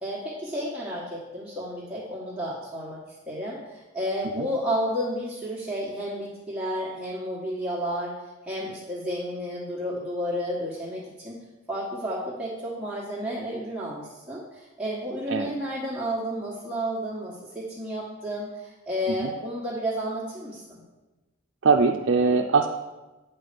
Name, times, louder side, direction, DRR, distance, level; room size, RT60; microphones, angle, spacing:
voice 1, 0.0-3.0 3.3-8.1 8.4-11.4 11.7-20.8, equal, 5° right, -8 dB, 1.3 m, -31 dB
voice 2, 21.6-22.7, right 4 dB, 80° right, 3 dB, 0.5 m, -22 dB
9.1 x 4.4 x 6.7 m, 1.1 s
head